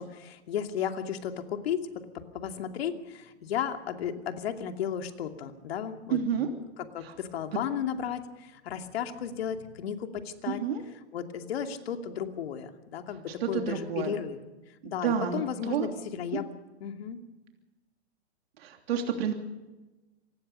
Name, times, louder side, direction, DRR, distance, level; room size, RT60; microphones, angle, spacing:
voice 1, 0.0-1.9 2.1-6.5 6.8-10.6 11.1-14.4 14.8-16.5 16.8-17.2, left 8 dB, 65° left, 5 dB, 2.7 m, -34 dB
voice 2, 6.1-6.5 7.0-7.1 10.5-10.8 13.4-14.1 14.8-15.9 18.6-19.3, right 8 dB, 65° right, 3 dB, 3.1 m, -30 dB
25.5 x 19.5 x 5.6 m, 1.1 s
hypercardioid pair, 140°, 33 cm